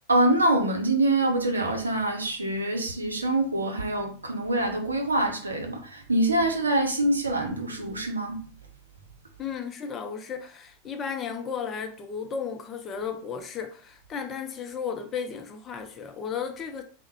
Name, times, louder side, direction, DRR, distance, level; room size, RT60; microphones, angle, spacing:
voice 1, 0.1-8.5, right 1 dB, 75° right, 0.6 m, -25 dB
voice 2, 9.4-16.8, left 6 dB, 25° left, 0.5 m, -34 dB
3.4 x 2.0 x 3.0 m
figure-of-eight pair, 90°, 0 cm